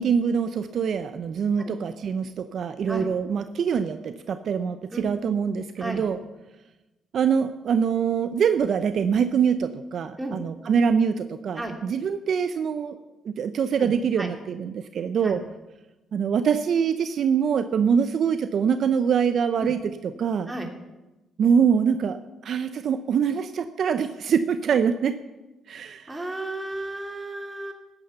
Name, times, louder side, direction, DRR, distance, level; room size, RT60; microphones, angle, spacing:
voice 1, 0.0-6.2 7.1-13.0 13.2-15.4 16.1-19.8 20.2-20.5 21.4-22.2 22.4-25.2 25.7-26.2, right 7 dB, 60° right, 10 dB, 0.7 m, -24 dB
voice 2, 26.1-27.7, right 1 dB, 10° right, 2 dB, 2.8 m, -33 dB
14.0 x 9.9 x 6.7 m, 1.1 s
cardioid pair, 90°, 0 cm